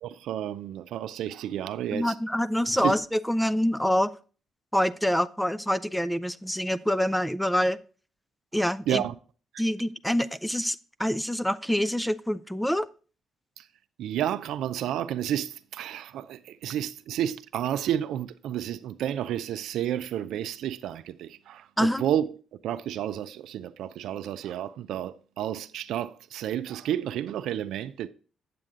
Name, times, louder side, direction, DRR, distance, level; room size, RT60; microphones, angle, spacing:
voice 1, 0.0-2.1 2.8-2.9 8.9-9.1 13.6-13.7 14.0-22.3 22.6-28.1, right 11 dB, 80° right, 0.4 m, -31 dB
voice 2, 1.9-4.1 4.7-7.8 8.5-9.0 9.6-12.9 21.8-22.0, equal, 5° left, 0.4 m, -26 dB
7.7 x 7.6 x 3.6 m
cardioid pair, 90°, 0 cm